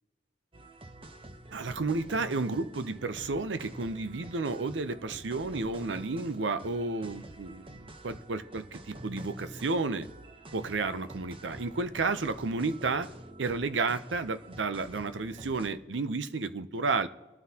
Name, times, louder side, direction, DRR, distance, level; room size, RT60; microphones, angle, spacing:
sound 1, 0.5-15.7, right 1 dB, 30° right, 0.9 m, -47 dB
voice 1, 1.5-7.7 8.0-10.1 10.5-13.1 13.4-17.1, right 3 dB, 75° right, 0.7 m, -32 dB
24.0 x 9.5 x 2.9 m
head